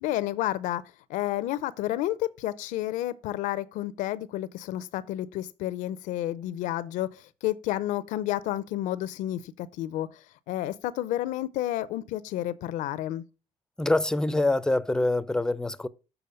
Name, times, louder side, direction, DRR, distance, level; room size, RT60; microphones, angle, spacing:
voice 1, 0.0-0.8 1.1-13.2, left 14 dB, 85° left, 0.5 m, -31 dB
voice 2, 13.8-15.9, left 2 dB, 5° left, 0.5 m, -25 dB
7.0 x 4.2 x 5.1 m
supercardioid pair, 75°, 13 cm